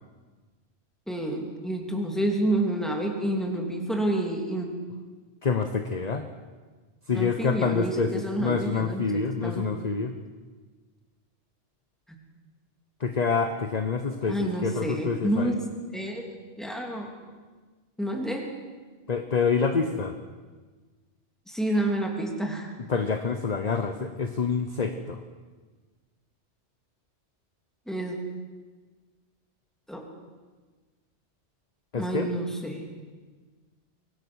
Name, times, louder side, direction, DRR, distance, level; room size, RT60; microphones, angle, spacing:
voice 1, 1.1-4.7 7.1-9.6 14.3-15.5 15.9-16.3 16.6-17.1 18.0-18.5 21.5-22.7 27.9-28.2 29.9-30.0 31.9-32.9, right 1 dB, ahead, 1 dB, 2.9 m, -29 dB
voice 2, 5.4-6.2 7.1-8.1 8.4-10.1 13.0-14.4 14.6-15.5 19.1-20.1 22.9-25.2 31.9-32.3, left 5 dB, 40° left, 7 dB, 1.0 m, -27 dB
23.5 x 17.5 x 6.3 m, 1.4 s
omnidirectional pair, 1.2 m